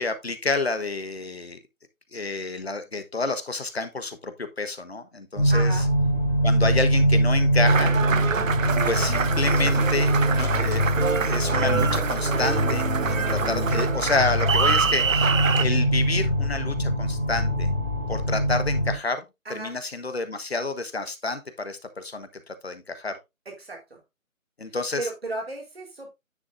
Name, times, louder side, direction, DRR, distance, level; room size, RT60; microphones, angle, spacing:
voice 1, 0.0-1.6 2.1-5.8 6.4-7.9 8.8-17.7 18.1-19.2 19.5-23.2 24.6-25.0, left 3 dB, 50° left, 1.2 m, -29 dB
sound 1, 5.3-18.9, equal, 10° right, 2.1 m, -23 dB
voice 2, 5.5-5.9 19.5-19.7 23.6-24.0 25.0-26.1, right 2 dB, 45° right, 4.1 m, -34 dB
Applause, 7.6-15.7, right 6 dB, 70° right, 0.7 m, -26 dB
9.7 x 7.2 x 2.5 m
figure-of-eight pair, 180°, 41 cm